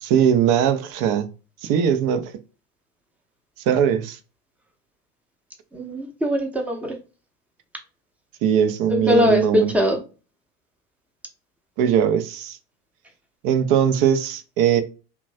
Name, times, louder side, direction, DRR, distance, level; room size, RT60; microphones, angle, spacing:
voice 1, 0.0-1.3 1.6-2.3 3.7-4.2 8.4-9.7 11.8-12.6 13.4-14.8, right 8 dB, 45° right, 0.6 m, -20 dB
voice 2, 5.7-7.0 8.9-10.0, left 1 dB, 5° right, 0.7 m, -21 dB
3.0 x 2.2 x 2.5 m
figure-of-eight pair, 70°, 47 cm